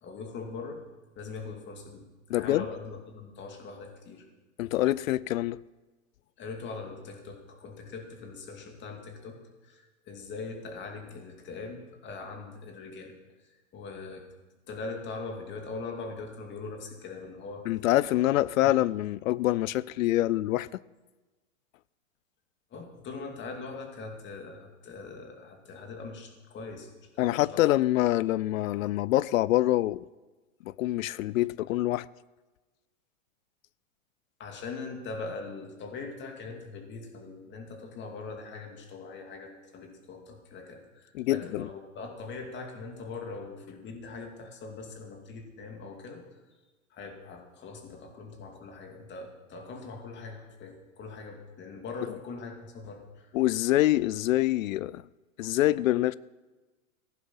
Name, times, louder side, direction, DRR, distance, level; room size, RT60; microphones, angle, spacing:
voice 1, 0.0-0.8 1.1-4.3 6.4-13.1 13.4-14.3 14.7-17.7 22.7-27.6 34.4-46.2 46.9-53.3, left 4 dB, 25° left, 2.5 m, -41 dB
voice 2, 2.3-2.7 4.6-5.6 17.7-20.8 27.2-30.0 30.7-32.1 41.1-41.7 53.3-55.0 55.4-56.1, left 15 dB, 75° left, 0.5 m, -25 dB
15.5 x 11.0 x 5.5 m
hypercardioid pair, 130°, 41 cm